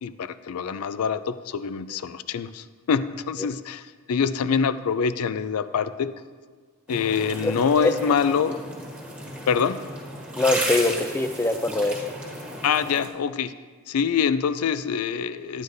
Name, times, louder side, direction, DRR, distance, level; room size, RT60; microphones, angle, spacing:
voice 1, 0.0-6.1 6.9-8.6 9.5-9.8 12.6-13.5 13.9-15.6, left 6 dB, 80° left, 13 dB, 0.4 m, -25 dB
sound 1, 6.9-13.1, right 1 dB, 5° right, 1.5 m, -34 dB
voice 2, 7.4-7.9 10.4-12.0, left 2 dB, 10° left, 7 dB, 0.4 m, -23 dB
11.0 x 9.6 x 2.6 m, 1.5 s
head